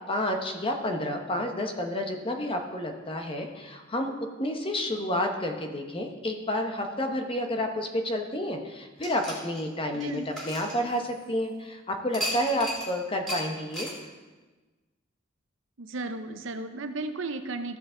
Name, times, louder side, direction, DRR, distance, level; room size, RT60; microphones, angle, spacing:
voice 1, 0.1-4.1 4.4-13.9, left 1 dB, 25° left, 4 dB, 0.9 m, -30 dB
sound 1, 9.0-11.4 12.1-12.9 13.3-13.4 13.7-14.0, equal, 5° left, 2.6 m, -35 dB
voice 2, 9.9-10.2 15.8-17.8, right 3 dB, 70° right, 8 dB, 0.7 m, -34 dB
14.0 x 6.6 x 3.8 m, 1.3 s
head